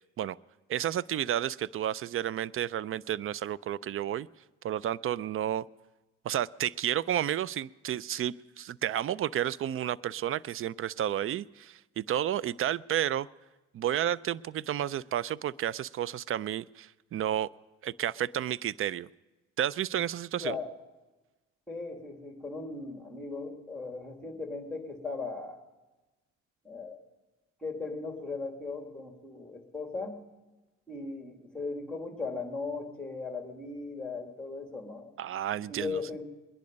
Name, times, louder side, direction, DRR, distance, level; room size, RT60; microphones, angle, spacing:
voice 1, 0.7-4.3 4.6-5.6 6.2-13.3 13.7-17.5 17.8-19.1 19.6-20.6 35.2-36.0, right 11 dB, 45° right, 21 dB, 0.4 m, -31 dB
voice 2, 21.7-25.6 26.6-27.0 27.6-30.2 30.9-35.1 35.7-36.2, left 3 dB, 5° left, 3 dB, 2.5 m, -37 dB
22.0 x 10.5 x 5.2 m, 1.1 s
cardioid pair, 90°, 30 cm